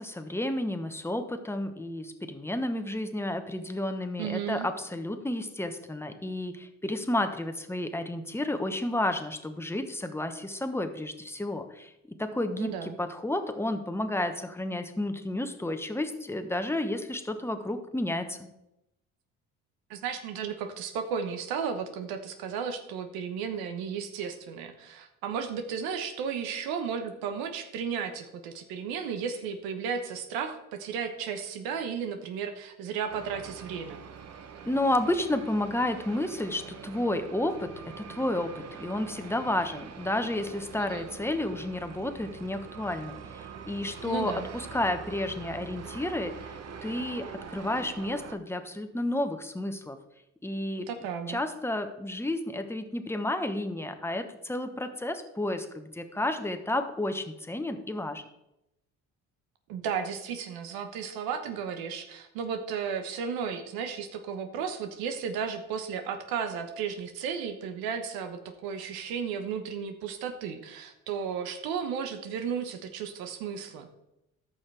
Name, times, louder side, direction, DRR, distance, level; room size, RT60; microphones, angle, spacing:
voice 1, 0.0-11.9 12.2-18.4 34.6-46.5 46.8-50.0 50.4-50.9 51.3-58.2, left 1 dB, 5° left, 7 dB, 1.1 m, -31 dB
voice 2, 4.2-4.7 12.6-12.9 19.9-34.0 40.8-41.1 44.0-44.5 50.8-51.4 59.7-73.9, right 7 dB, 80° right, 7 dB, 1.1 m, -34 dB
sound 1, 33.1-48.4, right 6 dB, 45° right, 1.0 m, -44 dB
13.5 x 5.7 x 3.4 m, 0.87 s
supercardioid pair, 75°, 36 cm